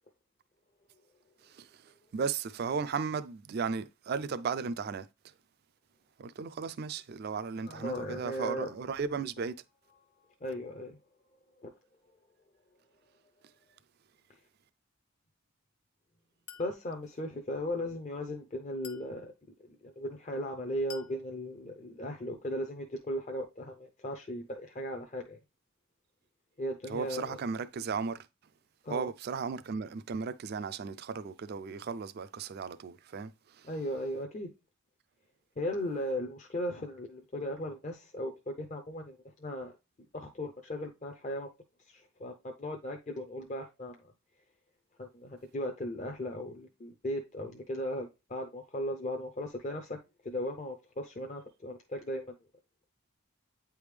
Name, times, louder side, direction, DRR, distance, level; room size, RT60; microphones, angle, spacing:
voice 1, 1.4-5.1 6.2-9.5 26.9-28.3 28.9-33.7, right 5 dB, 45° right, 0.3 m, -35 dB
voice 2, 7.6-8.9 9.9-10.0 10.4-11.0 11.6-11.7 16.6-19.3 19.6-25.4 26.6-27.4 28.8-29.1 33.6-34.5 35.6-38.3 38.6-39.7 40.0-41.5 41.9-44.1 45.0-50.0 50.2-52.3, left 1 dB, 35° left, 0.5 m, -37 dB
Chink clink, 16.5-16.8 18.8-19.2 20.9-21.2, left 7 dB, 85° left, 0.7 m, -48 dB
8.7 x 3.5 x 3.2 m
head